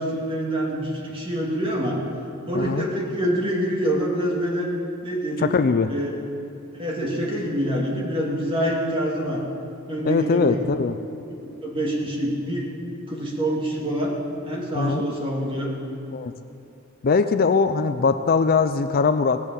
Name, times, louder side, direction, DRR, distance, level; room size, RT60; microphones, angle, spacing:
voice 1, 0.0-2.0 2.5-4.7 5.0-5.5 5.9-6.2 6.8-9.4 9.9-10.7 11.4-12.7 13.1-14.1 14.4-15.7, equal, 25° right, -2 dB, 2.4 m, -26 dB
voice 2, 2.5-2.9 5.4-5.9 10.0-11.0 14.7-15.0 16.1-16.3 17.0-19.4, left 4 dB, 45° left, 10 dB, 0.4 m, -21 dB
18.0 x 8.4 x 7.0 m, 2.6 s
head